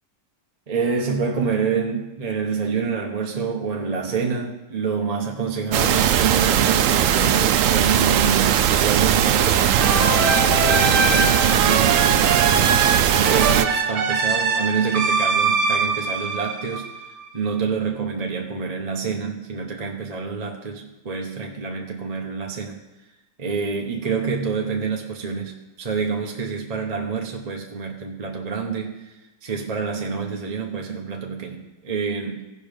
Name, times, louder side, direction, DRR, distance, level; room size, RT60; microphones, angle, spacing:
voice 1, 0.7-12.8 13.1-16.9 17.3-22.8 23.4-29.0 29.4-32.5, right 5 dB, 30° right, 1 dB, 0.7 m, -27 dB
sound 1, 5.7-13.7, right 10 dB, 70° right, 0.8 m, -19 dB
sound 2, 9.8-17.2, right 4 dB, 85° right, 1.5 m, -23 dB
16.0 x 5.5 x 5.2 m, 1.0 s
omnidirectional pair, 1.8 m